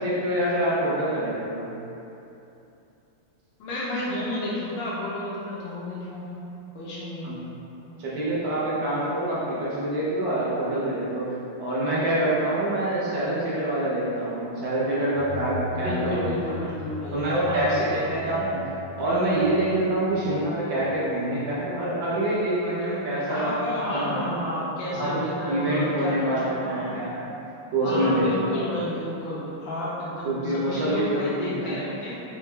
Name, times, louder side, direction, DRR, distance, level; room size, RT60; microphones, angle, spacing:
voice 1, 0.0-1.7 7.2-7.4 8.0-16.4 17.1-23.7 23.9-24.5 24.9-27.3 27.7-28.6 30.2-31.7, right 1 dB, 70° right, -8 dB, 1.3 m, -26 dB
voice 2, 3.6-6.3 6.7-7.3 15.7-18.4 20.1-20.3 23.3-26.9 27.8-32.2, left 1 dB, 70° left, -7 dB, 1.3 m, -31 dB
sound 1, 15.1-21.6, left 5 dB, 25° right, 0.6 m, -40 dB
4.8 x 2.2 x 3.2 m, 2.9 s
omnidirectional pair, 2.4 m